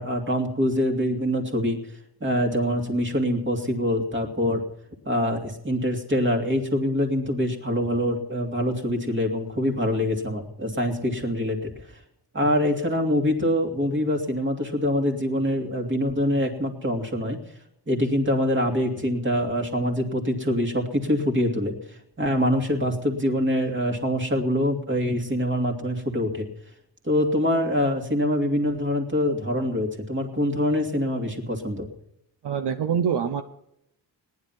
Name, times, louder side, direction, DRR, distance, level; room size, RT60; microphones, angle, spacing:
voice 1, 0.0-1.8 2.2-4.6 5.1-11.7 12.3-17.4 17.9-21.7 22.2-26.5 27.0-31.9, equal, 25° right, 3 dB, 2.6 m, -24 dB
voice 2, 32.4-33.4, right 7 dB, 65° right, 7 dB, 1.0 m, -25 dB
18.5 x 11.0 x 5.8 m, 0.77 s
wide cardioid pair, 140°, 44 cm